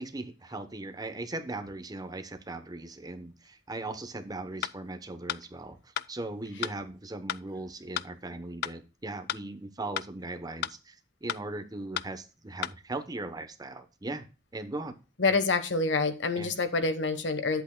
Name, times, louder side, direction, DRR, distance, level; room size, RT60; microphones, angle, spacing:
voice 1, 0.0-11.0 11.2-14.3 14.5-15.0 15.3-15.4 16.3-16.5, right 2 dB, 20° right, 8 dB, 0.8 m, -39 dB
sound 1, 4.6-4.8 5.3-5.4 6.0-6.1 6.6-6.8 7.3-7.4 8.0-8.1 8.6-8.8 9.3-9.4 10.0-10.1 10.6-10.8 11.3-11.4 12.0-12.1 12.6-12.8, left 10 dB, 55° left, 0.3 m, -33 dB
voice 2, 15.2-17.6, left 3 dB, 80° left, 10 dB, 1.2 m, -27 dB
11.0 x 8.0 x 2.2 m, 0.32 s
head